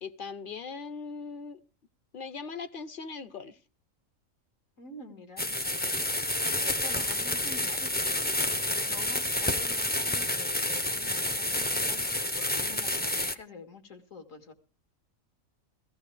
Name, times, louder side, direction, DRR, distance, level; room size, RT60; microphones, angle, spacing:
voice 1, 0.0-1.6 2.1-3.6, left 5 dB, 45° left, 0.9 m, -39 dB
voice 2, 4.8-14.5, left 3 dB, 75° left, 2.3 m, -47 dB
sound 1, 5.4-13.3, left 1 dB, 15° left, 0.4 m, -29 dB
15.5 x 15.5 x 3.4 m
omnidirectional pair, 1.4 m